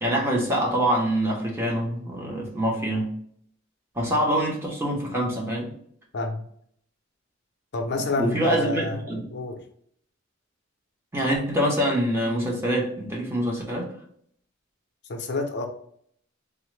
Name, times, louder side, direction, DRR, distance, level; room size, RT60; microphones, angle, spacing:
voice 1, 0.0-3.1 3.9-5.7 8.2-9.2 11.1-13.9, equal, 10° right, -2 dB, 0.9 m, -25 dB
voice 2, 7.7-9.0 9.3-9.6 15.1-15.7, left 2 dB, 55° left, 3 dB, 0.6 m, -28 dB
3.6 x 2.0 x 3.2 m, 0.65 s
head